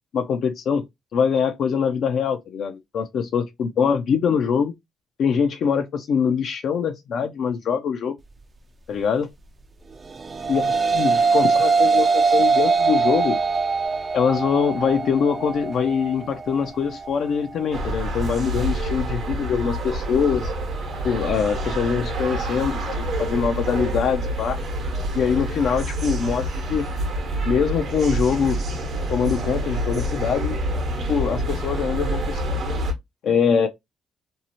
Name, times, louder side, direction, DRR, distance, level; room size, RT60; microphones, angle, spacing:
voice 1, 0.1-0.8 1.1-4.7 5.2-8.2 8.9-9.3 10.5-13.4 14.1-20.5 21.0-24.6 25.1-26.9 27.4-28.6 29.1-30.6 31.1-32.7 33.2-33.7, left 6 dB, 70° left, 0.4 m, -23 dB
sound 1, 10.1-19.2, right 4 dB, 35° right, 0.4 m, -22 dB
sound 2, 17.7-32.9, right 1 dB, 60° right, 0.9 m, -27 dB
2.6 x 2.0 x 2.8 m
cardioid pair, 90°, 0 cm